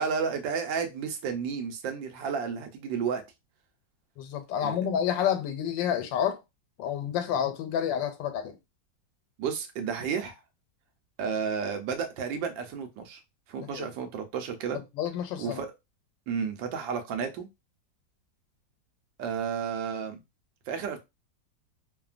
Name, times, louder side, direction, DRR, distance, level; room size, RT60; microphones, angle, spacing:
voice 1, 0.0-3.2 4.6-4.8 9.4-10.4 11.2-13.2 13.5-14.8 15.4-15.7 16.3-17.5 19.2-20.2 20.7-21.0, right 6 dB, 85° right, 1.4 m, -32 dB
voice 2, 4.2-6.4 6.8-8.6 13.6-13.9 14.7-15.6, left 9 dB, 90° left, 1.3 m, -29 dB
3.2 x 2.1 x 2.4 m
omnidirectional pair, 2.0 m